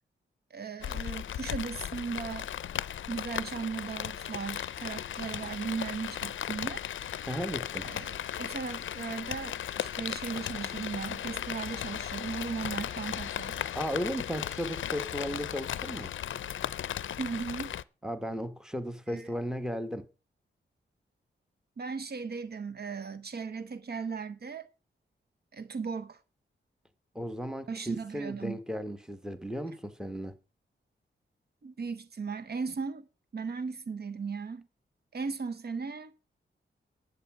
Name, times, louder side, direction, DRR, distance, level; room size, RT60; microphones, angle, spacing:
voice 1, 0.5-2.5 3.1-6.8 7.8-13.6 17.2-17.8 19.1-19.3 21.8-24.7 25.5-26.2 27.7-28.6 31.6-33.1 33.3-34.7 35.1-36.1, right 5 dB, 55° right, 1.0 m, -37 dB
Rain, 0.8-17.8, left 10 dB, 80° left, 0.5 m, -36 dB
voice 2, 7.2-7.9 13.7-16.1 18.0-20.1 27.1-30.4, equal, 5° right, 1.2 m, -35 dB
11.0 x 8.2 x 6.0 m
wide cardioid pair, 115°, 20 cm